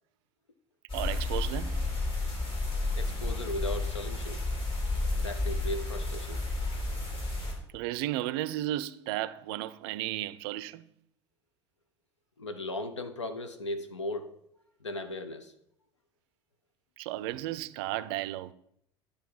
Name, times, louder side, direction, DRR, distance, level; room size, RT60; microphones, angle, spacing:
sound 1, 0.9-7.5, left 2 dB, 35° left, 3.0 m, -31 dB
voice 1, 0.9-1.9 7.7-10.9 17.0-18.5, right 15 dB, 60° right, 0.4 m, -34 dB
voice 2, 3.0-4.5 5.2-6.4 12.4-14.3 14.8-15.5, left 2 dB, 85° left, 0.7 m, -37 dB
10.5 x 3.5 x 5.3 m
figure-of-eight pair, 65°, 15 cm